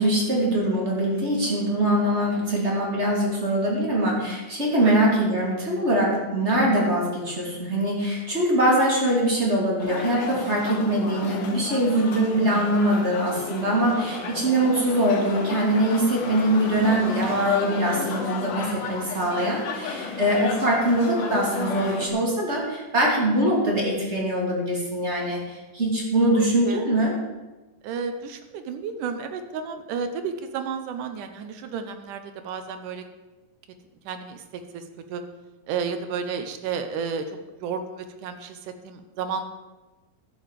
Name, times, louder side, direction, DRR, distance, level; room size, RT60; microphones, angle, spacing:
voice 1, 0.0-27.1, right 1 dB, 20° right, -3 dB, 2.6 m, -23 dB
sound 1, 9.8-22.1, left 5 dB, 65° left, 2.8 m, -33 dB
voice 2, 26.3-26.8 27.8-33.0 34.1-34.8 35.1-35.2 35.7-39.4, right 6 dB, 75° right, 8 dB, 2.1 m, -32 dB
11.5 x 7.1 x 7.5 m, 1.1 s
omnidirectional pair, 4.2 m